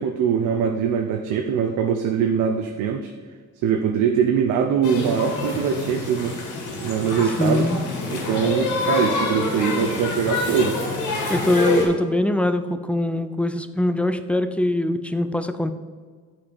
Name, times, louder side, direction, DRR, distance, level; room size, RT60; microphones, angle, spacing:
voice 1, 0.0-3.1 3.6-6.4 6.8-7.7 8.1-10.8, right 7 dB, 85° right, 4 dB, 0.6 m, -22 dB
sound 1, 4.8-11.9, left 3 dB, 85° left, 2.1 m, -27 dB
voice 2, 7.4-7.8 11.3-15.7, left 1 dB, 5° left, 10 dB, 0.4 m, -22 dB
8.5 x 4.3 x 5.1 m, 1.6 s
cardioid pair, 90°, 30 cm